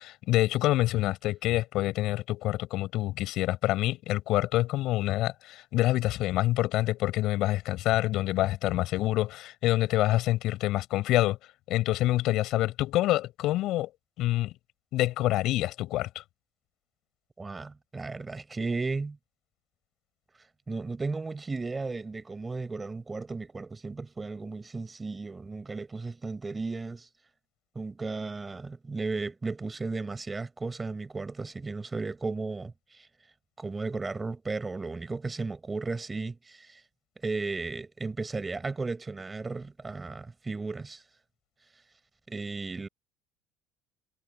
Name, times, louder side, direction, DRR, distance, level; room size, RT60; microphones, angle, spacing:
voice 1, 0.0-11.4 11.7-13.9 14.2-14.5 14.9-16.2, left 16 dB, 60° left, 7.2 m, -26 dB
voice 2, 17.4-19.2 20.7-27.1 27.7-33.1 33.6-36.8 37.2-41.0 42.3-42.9, right 3 dB, 15° right, 4.8 m, -35 dB
cardioid pair, 120°, 0 cm